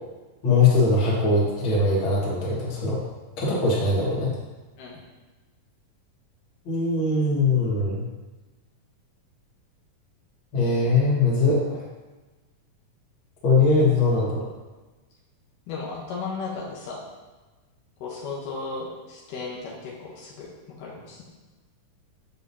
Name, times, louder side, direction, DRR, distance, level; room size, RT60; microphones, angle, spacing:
voice 1, 0.4-3.0 3.4-4.3 6.7-8.0 10.5-11.8 13.4-14.5, left 3 dB, 45° left, -5 dB, 2.0 m, -21 dB
voice 2, 15.7-17.0 18.0-20.5 20.8-21.2, left 4 dB, 75° left, -4 dB, 2.6 m, -35 dB
7.5 x 7.1 x 2.8 m, 1.2 s
omnidirectional pair, 4.0 m